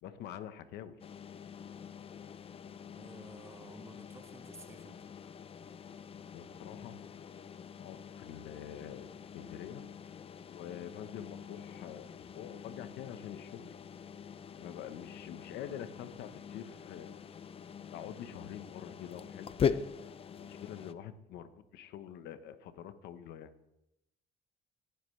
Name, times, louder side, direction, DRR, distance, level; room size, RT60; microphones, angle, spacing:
voice 1, 0.0-1.0 6.3-7.0 7.7-9.1 9.3-9.8 10.5-13.6 14.6-17.2 17.9-19.6 20.0-23.5, left 10 dB, 80° left, 1.1 m, -46 dB
sound 1, 1.0-20.9, left 7 dB, 35° left, 0.5 m, -42 dB
voice 2, 3.0-5.0, right 3 dB, 15° right, 0.8 m, -53 dB
18.5 x 10.5 x 3.3 m
cardioid pair, 110°, 17 cm